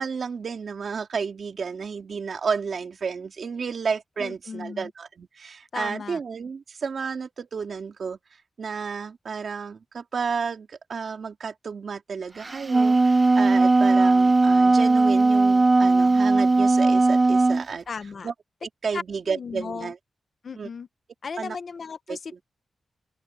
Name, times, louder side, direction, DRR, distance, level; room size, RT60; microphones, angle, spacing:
voice 1, 0.0-8.2 8.6-17.8 18.2-18.3 18.8-20.0 20.5-20.7 21.4-21.5 22.1-22.2, right 5 dB, 60° right, 2.9 m, -32 dB
voice 2, 4.2-4.9 5.7-6.2 17.9-18.3 18.9-19.9 20.4-20.9 21.2-22.4, left 5 dB, 55° left, 1.0 m, -36 dB
Wind instrument woodwind instrument, 12.5-17.6, right 3 dB, 25° right, 0.6 m, -18 dB
open air
wide cardioid pair, 130°, 0 cm